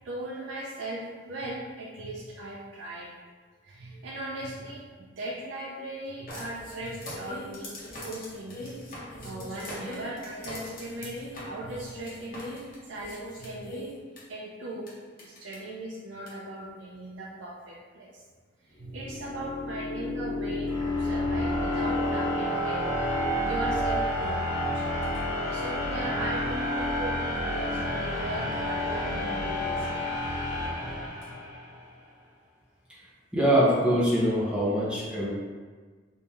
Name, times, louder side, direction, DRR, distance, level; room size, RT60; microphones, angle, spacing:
voice 1, 0.0-3.1 3.6-13.9 14.3-14.9 15.2-18.2 18.6-24.8 25.1-30.5 30.8-31.3, right 1 dB, 90° right, -4 dB, 0.5 m, -38 dB
sound 1, 6.3-14.2 14.9-15.0 15.2-15.6 16.3-16.4, left 1 dB, 50° left, 0.9 m, -41 dB
sound 2, 18.8-31.7, left 1 dB, 90° left, 1.3 m, -30 dB
voice 2, 33.3-35.3, equal, 5° right, -8 dB, 0.7 m, -23 dB
3.0 x 2.7 x 3.4 m, 1.5 s
head